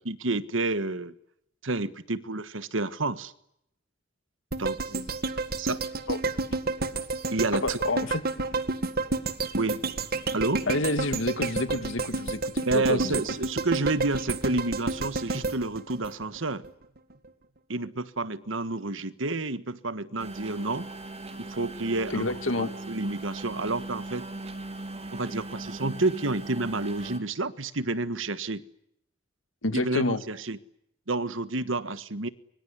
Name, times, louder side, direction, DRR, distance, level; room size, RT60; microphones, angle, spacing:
voice 1, 0.0-1.1 1.6-3.3 4.6-5.1 5.6-5.8 7.3-7.8 9.6-9.8 10.3-10.7 12.6-16.6 17.7-20.9 21.4-22.3 22.6-24.2 25.1-28.6 29.7-30.6 31.1-32.3, right 2 dB, 75° right, 14 dB, 1.5 m, -29 dB
sound 1, 4.5-16.7 17.1-17.2, right 3 dB, 50° right, 1.8 m, -30 dB
voice 2, 7.5-8.2 10.7-13.2 22.1-22.7 29.6-30.2, left 2 dB, 75° left, 11 dB, 2.1 m, -29 dB
sound 2, 20.2-27.2, right 2 dB, 30° right, 3.1 m, -39 dB
24.5 x 24.0 x 9.8 m, 0.77 s
head